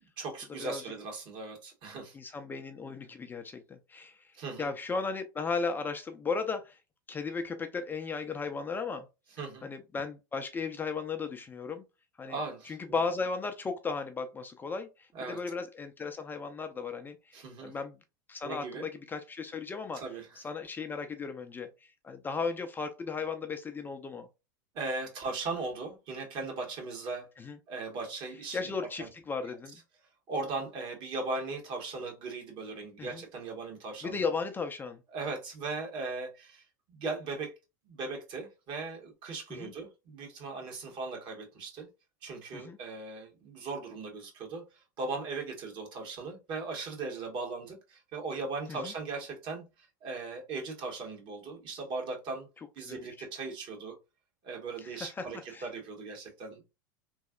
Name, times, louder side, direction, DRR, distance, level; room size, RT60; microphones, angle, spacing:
voice 1, 0.2-2.2 4.3-4.7 9.4-9.7 12.2-13.0 15.1-15.4 17.3-17.7 18.4-18.9 19.9-20.4 24.7-27.3 27.7-28.7 29.0-29.1 30.3-34.3 35.1-37.6 37.9-41.9 42.2-52.5 52.7-53.9 54.4-56.6, right 3 dB, 50° right, 1.5 m, -38 dB
voice 2, 2.1-4.2 4.6-6.8 7.1-9.1 9.6-11.8 12.2-12.4 12.7-17.9 18.3-20.0 20.4-21.7 22.0-24.3 27.4-27.6 28.5-29.8 33.0-33.2 34.0-35.0 39.5-39.7 42.5-42.8 48.7-48.9 52.9-53.0 54.8-55.6, left 4 dB, 20° left, 0.4 m, -36 dB
3.1 x 2.7 x 2.4 m
hypercardioid pair, 100°, 10 cm